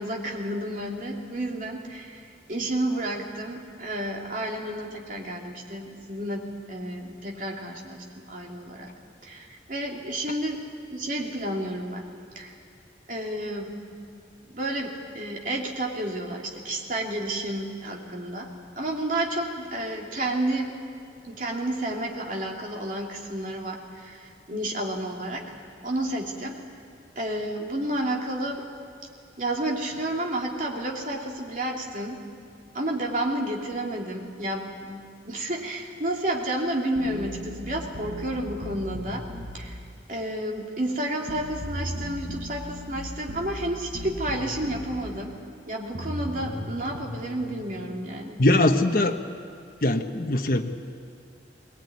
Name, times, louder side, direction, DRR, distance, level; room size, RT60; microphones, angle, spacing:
voice 1, 0.0-8.9 9.2-10.6 10.9-12.0 12.3-12.5 13.1-13.9 14.5-18.5 18.8-20.7 21.2-25.5 25.8-26.6 27.1-28.6 29.0-29.1 29.4-32.2 32.7-39.3 39.5-39.8 40.1-45.4 45.7-48.4, right 1 dB, 50° right, -1 dB, 3.1 m, -31 dB
sound 1, 36.9-39.5 41.3-44.9 45.9-47.6, equal, 75° right, 5.2 m, -36 dB
voice 2, 48.4-49.1 49.8-50.7, left 1 dB, 55° left, 3 dB, 1.1 m, -21 dB
20.5 x 20.0 x 9.6 m, 2.5 s
head